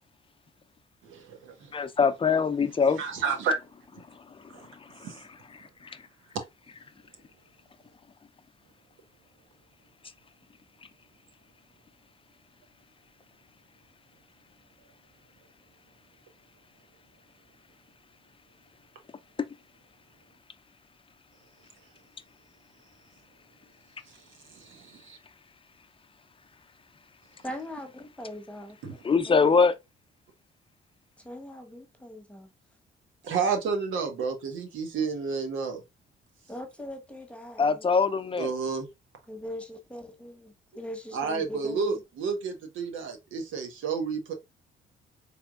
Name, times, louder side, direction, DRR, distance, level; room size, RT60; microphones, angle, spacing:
voice 1, 1.0-1.7 3.0-3.6 4.5-4.7 5.0-5.2 24.1-24.2 24.5-25.2 28.8-28.9 33.2-35.8 38.4-38.9 41.1-44.3, right 5 dB, 80° right, 1.2 m, -31 dB
voice 2, 1.7-3.0 5.1-5.2 29.0-29.7 37.6-38.5, left 5 dB, 25° left, 0.6 m, -23 dB
voice 3, 27.4-29.0 29.3-29.5 31.2-32.5 36.5-37.9 39.3-41.9, left 1 dB, 5° left, 1.2 m, -41 dB
4.4 x 3.5 x 2.4 m
cardioid pair, 90°, 20 cm